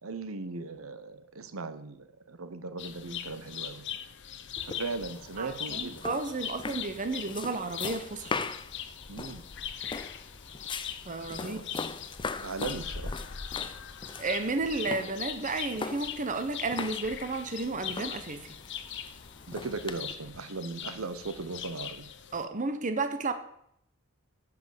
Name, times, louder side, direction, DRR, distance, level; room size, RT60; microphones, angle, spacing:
voice 1, 0.0-3.9 4.7-6.0 9.1-9.4 9.9-10.0 11.4-11.6 12.4-13.1 19.5-22.1, right 3 dB, 85° right, 11 dB, 0.9 m, -38 dB
sound 1, 2.8-22.4, left 9 dB, 60° left, 0.8 m, -41 dB
sound 2, 4.6-20.1, left 4 dB, 25° left, 0.5 m, -41 dB
voice 2, 5.4-8.3 11.1-11.6 14.2-18.4 22.3-23.3, right 3 dB, 40° right, 9 dB, 0.9 m, -32 dB
10.5 x 6.0 x 7.6 m, 0.73 s
head